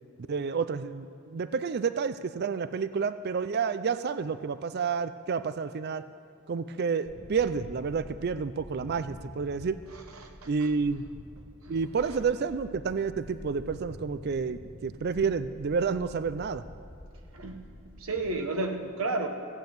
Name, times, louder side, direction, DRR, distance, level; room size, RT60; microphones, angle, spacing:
voice 1, 0.3-6.0 6.5-9.8 10.5-11.0 11.7-16.6, right 5 dB, 50° right, 13 dB, 0.4 m, -30 dB
sound 1, 7.1-18.3, left 1 dB, 75° left, 1.4 m, -48 dB
voice 2, 9.9-10.7 11.6-11.7 17.3-17.7 18.0-19.3, right 2 dB, 75° right, 4 dB, 1.2 m, -33 dB
15.5 x 8.6 x 7.8 m, 2.7 s
head